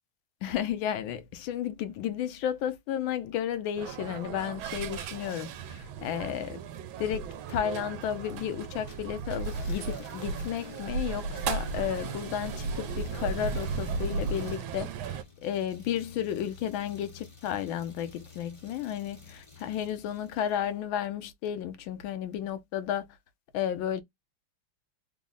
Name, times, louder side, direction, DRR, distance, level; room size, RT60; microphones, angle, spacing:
voice 1, 0.4-6.6 7.0-23.1 23.5-24.0, left 10 dB, 85° left, 1.4 m, -33 dB
sound 1, 3.8-15.2, right 5 dB, 90° right, 1.4 m, -35 dB
sound 2, 8.9-20.6, left 3 dB, 55° left, 0.3 m, -49 dB
3.7 x 2.0 x 3.6 m
omnidirectional pair, 2.1 m